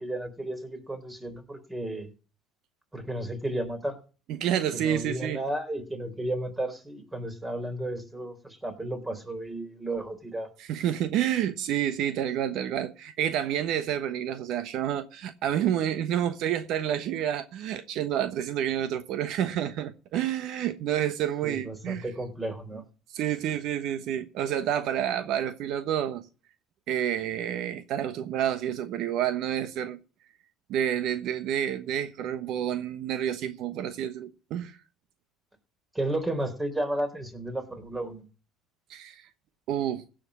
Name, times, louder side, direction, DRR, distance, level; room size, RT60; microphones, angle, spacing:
voice 1, 0.0-2.1 2.9-4.0 4.7-10.5 21.4-22.8 35.9-38.2, right 1 dB, 15° right, 3.7 m, -33 dB
voice 2, 4.4-5.4 10.6-22.0 23.1-26.3 26.9-30.0 30.7-34.8 38.9-39.3 39.7-40.0, right 10 dB, 65° right, 1.1 m, -29 dB
16.5 x 6.4 x 6.2 m
supercardioid pair, 85°, 0 cm